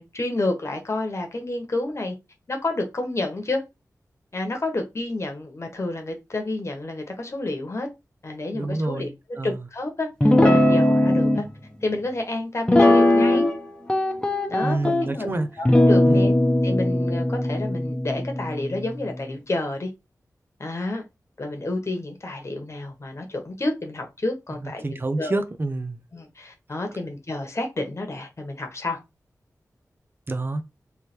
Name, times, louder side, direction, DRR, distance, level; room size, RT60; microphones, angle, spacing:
voice 1, 0.0-2.2 2.5-3.6 4.3-7.9 8.2-9.1 9.4-11.4 11.8-13.5 14.5-16.3 16.6-19.9 20.6-21.1 21.4-25.4 26.1-29.0, left 2 dB, 45° left, 1.1 m, -29 dB
voice 2, 8.5-9.1 9.4-9.5 14.6-15.5 16.1-16.2 24.8-26.0 30.3-30.6, right 2 dB, 35° right, 0.7 m, -27 dB
Guitar, 10.2-11.4 12.7-13.6 13.9-15.1 15.7-19.1, left 1 dB, 15° left, 0.9 m, -19 dB
3.3 x 3.3 x 4.4 m
wide cardioid pair, 85°, 7 cm